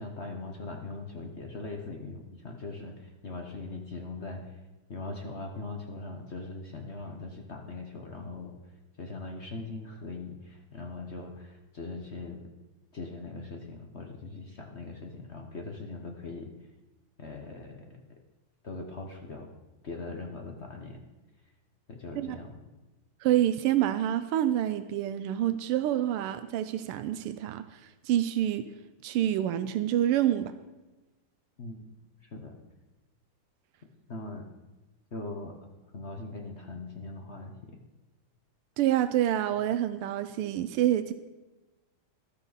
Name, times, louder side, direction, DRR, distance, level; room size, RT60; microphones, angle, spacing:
voice 1, 0.0-4.6 4.9-8.5 9.0-12.4 12.9-16.5 17.2-18.0 18.6-19.5 19.8-21.0 21.9-22.6 31.6-31.9 32.2-32.6 34.1-34.5 35.1-35.6 35.9-37.8, left 3 dB, 45° left, 3 dB, 1.0 m, -40 dB
voice 2, 23.2-27.8 28.0-28.7 29.0-30.5 38.8-41.1, right 12 dB, 85° right, 11 dB, 1.6 m, -27 dB
14.0 x 12.0 x 4.0 m, 1.1 s
omnidirectional pair, 2.4 m